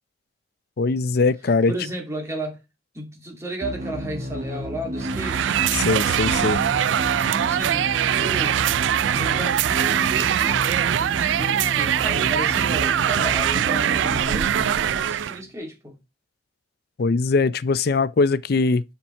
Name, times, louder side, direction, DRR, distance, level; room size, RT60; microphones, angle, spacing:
voice 1, 0.8-1.7 5.7-6.6 17.0-18.8, left 4 dB, 60° left, 0.5 m, -21 dB
voice 2, 1.7-2.6 2.9-5.5 7.3-8.6 9.1-16.0, right 1 dB, 15° right, 2.4 m, -33 dB
sound 1, 3.6-15.5, equal, 45° right, 1.3 m, -32 dB
sound 2, 5.0-15.4, right 10 dB, 90° right, 0.3 m, -22 dB
7.3 x 5.8 x 4.4 m
head